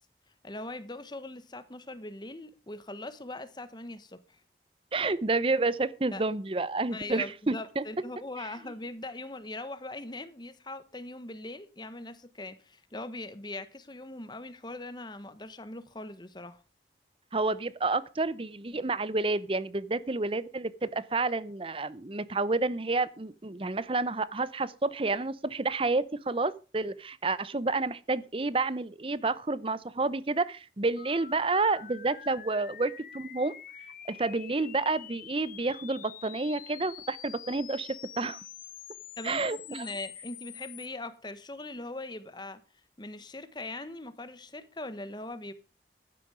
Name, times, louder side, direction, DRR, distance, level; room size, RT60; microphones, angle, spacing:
voice 1, 0.4-4.4 6.1-6.2 6.9-16.6 39.2-42.6 43.0-45.5, left 2 dB, 25° left, 1.1 m, -41 dB
voice 2, 4.9-7.8 17.3-33.8 34.1-38.4 39.2-39.8, right 3 dB, 30° right, 0.7 m, -30 dB
sound 1, 31.0-40.9, left 10 dB, 50° left, 0.8 m, -47 dB
12.0 x 10.0 x 5.0 m
head